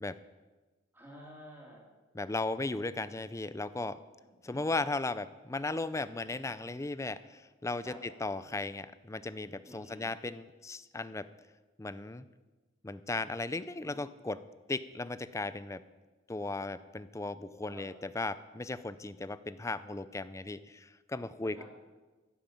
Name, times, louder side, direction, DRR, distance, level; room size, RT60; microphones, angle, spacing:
voice 1, 0.9-1.9 4.4-4.7 7.8-8.0 9.6-10.1 13.8-14.0 17.7-17.9 21.4-21.6, equal, 10° right, -2 dB, 3.3 m, -51 dB
voice 2, 2.1-4.0 4.4-11.3 11.8-12.2 12.8-14.4 14.7-15.8 16.3-21.6, left 2 dB, 15° left, 15 dB, 0.4 m, -36 dB
15.0 x 9.1 x 7.2 m, 1.2 s
head